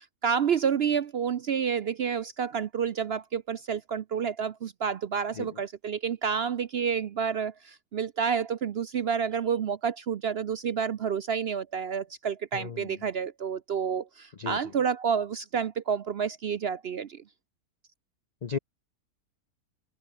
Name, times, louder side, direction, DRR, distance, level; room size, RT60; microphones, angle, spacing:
voice 1, 0.0-17.2, right 7 dB, 55° right, 0.7 m, -29 dB
voice 2, 12.5-12.9 14.4-14.6 18.4-18.6, left 6 dB, 50° left, 0.5 m, -34 dB
omnidirectional pair, 1.6 m